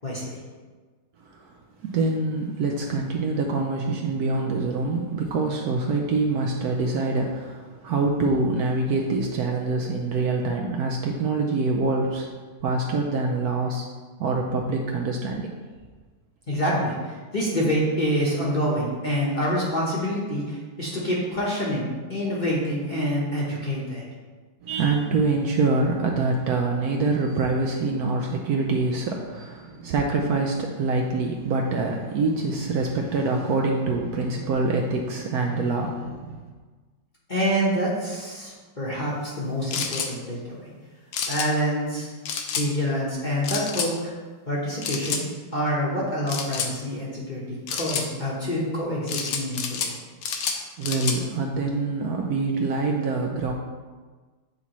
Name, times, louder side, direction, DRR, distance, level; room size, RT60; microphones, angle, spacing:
voice 1, 0.0-0.4 16.5-24.1 37.3-40.7 41.3-42.1 42.6-44.1 44.5-45.2 45.5-49.9, equal, 35° left, -6 dB, 0.9 m, -27 dB
voice 2, 1.8-12.3 12.6-13.9 14.2-15.5 24.6-36.4 50.8-53.5, right 3 dB, 70° right, 0 dB, 1.0 m, -25 dB
sound 1, 39.7-40.1 41.1-41.5 42.3-42.7 43.4-43.9 44.8-45.2 46.3-46.7 47.7-48.1 49.1-49.9 50.2-51.2, left 6 dB, 70° left, 1.1 m, -29 dB
8.2 x 4.1 x 3.0 m, 1.4 s
omnidirectional pair, 1.9 m